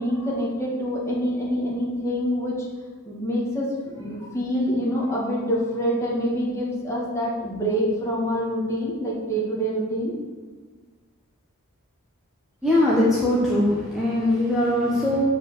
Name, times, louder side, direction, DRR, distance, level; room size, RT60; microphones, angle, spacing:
voice 1, 0.0-2.7 3.1-10.2, equal, 15° left, -5 dB, 2.0 m, -26 dB
voice 2, 12.6-15.2, left 1 dB, ahead, -8 dB, 1.2 m, -21 dB
7.2 x 5.3 x 6.9 m, 1.4 s
head